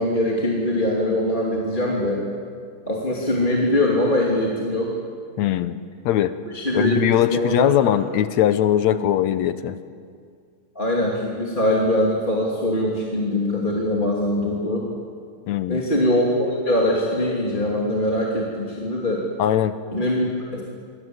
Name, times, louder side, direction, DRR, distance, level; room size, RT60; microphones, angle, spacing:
voice 1, 0.0-2.3 2.9-4.9 6.5-7.9 10.7-14.9 15.7-19.2 19.9-20.6, left 1 dB, 15° left, -3 dB, 2.8 m, -22 dB
voice 2, 5.4-5.8 6.1-6.4 6.7-9.8 15.5-15.8 19.4-19.7, left 11 dB, 70° left, 12 dB, 2.0 m, -20 dB
26.0 x 25.0 x 8.0 m, 2.2 s
omnidirectional pair, 3.5 m